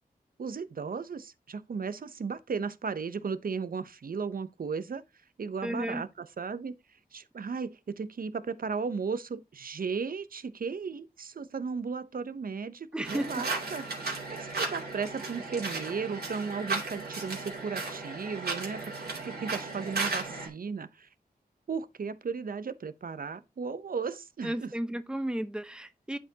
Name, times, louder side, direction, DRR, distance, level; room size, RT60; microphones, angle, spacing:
voice 1, 0.4-5.0 5.4-6.7 7.1-13.8 14.3-18.8 19.2-21.1 21.7-24.7, right 5 dB, 65° right, 0.6 m, -35 dB
voice 2, 5.6-6.0 12.9-13.4 24.4-26.2, right 1 dB, 5° right, 0.7 m, -33 dB
sound 1, 13.0-20.5, right 3 dB, 85° right, 2.5 m, -35 dB
11.0 x 4.4 x 2.8 m
wide cardioid pair, 90°, 16 cm